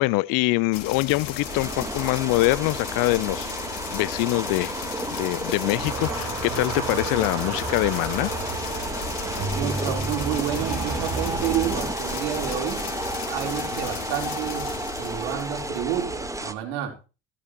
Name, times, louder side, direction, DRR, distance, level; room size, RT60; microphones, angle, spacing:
voice 1, 0.0-4.8 5.1-8.3, left 21 dB, 65° left, 0.7 m, -24 dB
sound 1, 0.7-16.5, left 9 dB, 80° left, 2.7 m, -36 dB
sound 2, 1.4-16.5, right 2 dB, 10° right, 1.4 m, -32 dB
sound 3, 5.8-11.8, right 4 dB, 50° right, 5.0 m, -33 dB
voice 2, 9.5-12.8 13.3-16.9, right 10 dB, 75° right, 3.9 m, -30 dB
14.5 x 14.0 x 3.0 m
hypercardioid pair, 65°, 36 cm